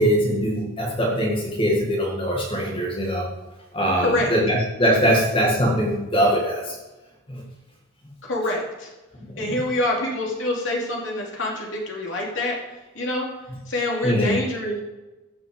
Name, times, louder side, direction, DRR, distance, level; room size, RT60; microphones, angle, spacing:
voice 1, 0.0-3.3 3.7-6.8 7.3-7.4 9.3-9.6 14.0-14.4, equal, 25° left, -2 dB, 1.9 m, -22 dB
voice 2, 4.0-4.3 8.2-8.9 9.4-12.6 12.9-13.3 13.7-14.8, left 1 dB, 70° left, -1 dB, 2.8 m, -26 dB
15.0 x 6.0 x 5.1 m, 1.1 s
head